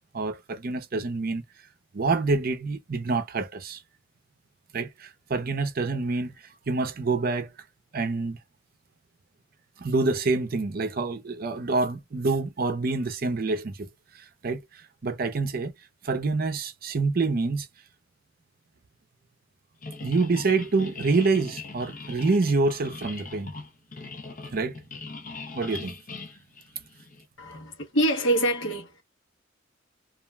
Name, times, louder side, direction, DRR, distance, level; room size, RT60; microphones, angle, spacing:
voice 1, 0.1-1.4 1.9-3.8 4.7-6.3 6.7-7.5 7.9-8.4 9.8-13.9 14.1-15.7 16.0-17.7 20.0-23.5 24.5-24.8 25.5-25.9, right 3 dB, 45° right, 0.5 m, -27 dB
sound 1, 19.8-27.3, left 3 dB, 45° left, 0.6 m, -41 dB
voice 2, 27.4-29.0, right 1 dB, 65° left, 0.9 m, -25 dB
2.4 x 2.1 x 3.2 m
head